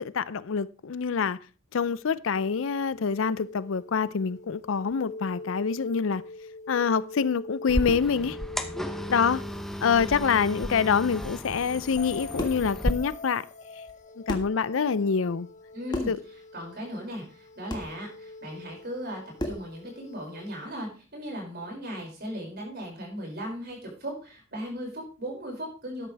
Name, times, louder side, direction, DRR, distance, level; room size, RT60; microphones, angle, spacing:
voice 1, 0.0-1.4 1.7-6.2 6.7-8.4 9.1-9.4 9.8-13.4 14.3-15.5 16.1-16.2, left 6 dB, 70° left, 0.5 m, -26 dB
The Watcher, 2.3-20.7, left 3 dB, 35° left, 0.8 m, -44 dB
sound 1, 7.7-12.9, equal, ahead, 0.7 m, -33 dB
sound 2, 12.4-12.7 13.9-14.0 14.3-14.6 15.9-16.2 17.7-17.9 19.4-19.7, equal, 20° left, 1.7 m, -33 dB
voice 2, 15.7-16.1 16.5-26.1, equal, 50° right, 5.9 m, -37 dB
13.0 x 10.5 x 3.4 m
head